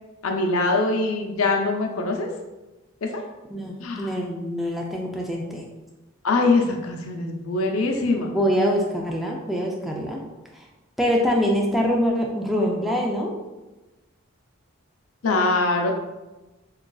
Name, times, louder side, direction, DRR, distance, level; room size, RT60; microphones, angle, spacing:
voice 1, 0.2-2.3 3.0-3.2 3.8-4.1 6.2-8.3 15.2-15.9, left 3 dB, 85° left, 2 dB, 0.5 m, -23 dB
voice 2, 3.5-5.7 8.3-10.2 10.6-10.7 11.0-13.4, equal, ahead, -1 dB, 0.3 m, -24 dB
4.7 x 2.4 x 2.3 m, 1.1 s
head